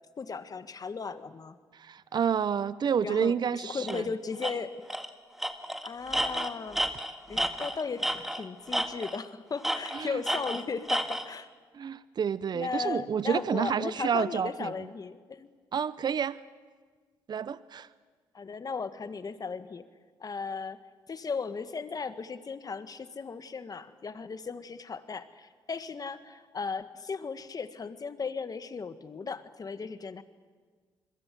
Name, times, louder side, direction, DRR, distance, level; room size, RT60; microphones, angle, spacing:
voice 1, 0.2-1.6 3.0-4.7 5.8-6.8 7.3-11.5 12.5-15.5 18.3-19.8 20.2-20.8 21.1-30.2, left 5 dB, 40° left, 11 dB, 1.7 m, -36 dB
voice 2, 1.7-4.1 9.9-10.2 11.7-14.9 15.7-16.4 17.3-17.9, right 7 dB, 50° right, 17 dB, 0.8 m, -29 dB
Tools, 3.9-4.0 4.4-4.5 4.9-5.1 5.4-8.4 8.7-9.2 9.6-11.3, equal, 5° right, 1.8 m, -31 dB
27.0 x 22.0 x 7.8 m, 1.5 s
supercardioid pair, 60°, 9 cm